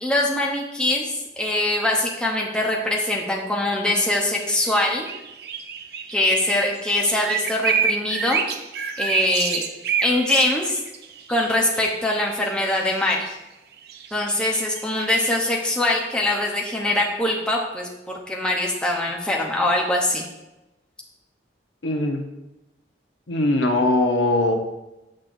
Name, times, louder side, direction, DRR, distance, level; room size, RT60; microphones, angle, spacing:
voice 1, 0.0-5.1 6.1-8.4 9.0-9.6 10.0-10.8 11.3-13.4 14.1-17.9 18.3-20.2, left 1 dB, 5° left, -2 dB, 0.7 m, -23 dB
sound 1, 4.5-12.8 13.1-13.3 13.9-15.5, right 6 dB, 55° right, 0.5 m, -28 dB
voice 2, 21.8-22.2 23.3-24.6, left 2 dB, 85° left, 4 dB, 0.8 m, -20 dB
7.3 x 6.4 x 2.6 m, 0.97 s
head